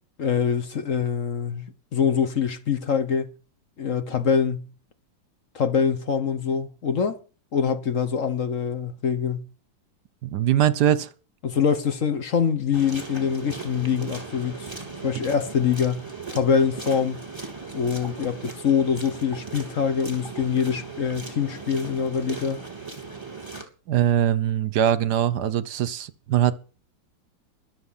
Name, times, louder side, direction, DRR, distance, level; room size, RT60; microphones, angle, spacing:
voice 1, 0.2-3.3 3.8-4.7 5.5-7.2 7.5-9.5 11.4-14.7 15.0-17.2 17.7-22.6, left 7 dB, 45° left, 1.3 m, -24 dB
voice 2, 10.2-11.1 23.9-26.6, right 10 dB, 65° right, 1.3 m, -22 dB
sound 1, 12.7-23.6, right 4 dB, 15° right, 3.0 m, -38 dB
22.5 x 7.5 x 5.6 m
omnidirectional pair, 2.1 m